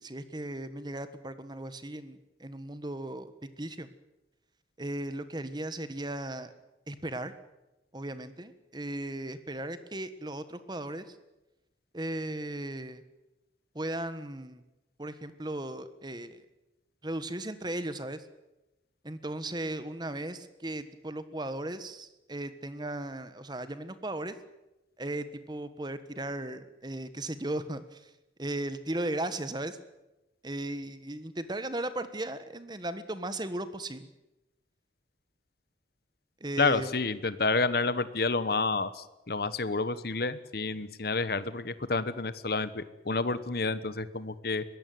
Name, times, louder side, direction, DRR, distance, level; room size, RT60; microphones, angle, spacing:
voice 1, 0.0-3.9 4.8-6.5 6.9-7.3 7.9-11.2 11.9-13.0 13.7-14.6 15.0-16.4 17.0-18.3 19.0-24.3 25.0-28.1 28.4-29.8 30.4-34.1 36.4-37.0, right 1 dB, 25° right, 12 dB, 1.4 m, -36 dB
voice 2, 36.6-44.6, left 3 dB, 60° left, 14 dB, 1.2 m, -29 dB
22.0 x 16.5 x 9.4 m, 0.98 s
head